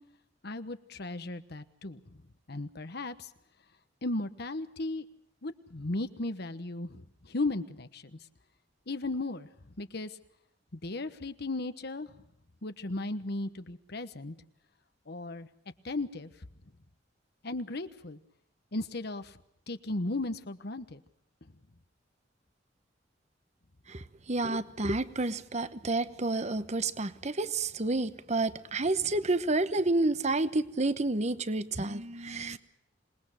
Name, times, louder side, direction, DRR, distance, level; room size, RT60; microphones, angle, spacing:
voice 1, 0.4-2.0 2.5-3.3 4.0-5.1 5.4-8.2 8.9-9.5 9.8-10.2 10.7-12.1 12.6-14.3 15.1-15.5 15.8-16.3 17.4-18.2 18.7-19.4 19.7-21.0 32.3-32.4, left 2 dB, 60° left, 11 dB, 1.2 m, -36 dB
voice 2, 23.9-32.6, right 2 dB, 40° right, 13 dB, 1.1 m, -30 dB
26.5 x 20.0 x 6.4 m, 0.71 s
head